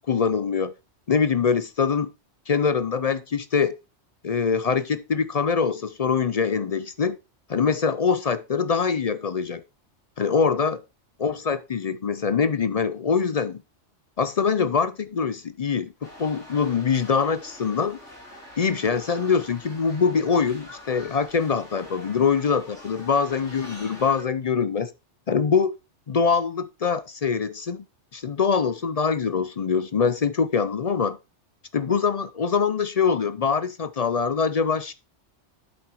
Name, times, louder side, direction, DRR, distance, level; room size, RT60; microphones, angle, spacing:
voice 1, 0.1-0.7 1.1-2.1 2.5-3.8 4.2-7.2 7.5-9.6 10.2-10.8 11.2-13.6 14.2-18.0 18.6-24.9 25.3-25.7 26.1-27.8 28.1-31.2 31.7-34.9, left 6 dB, 50° left, 0.5 m, -23 dB
sound 1, 16.0-24.2, left 1 dB, 85° left, 5.5 m, -45 dB
8.5 x 7.8 x 3.0 m
omnidirectional pair, 1.2 m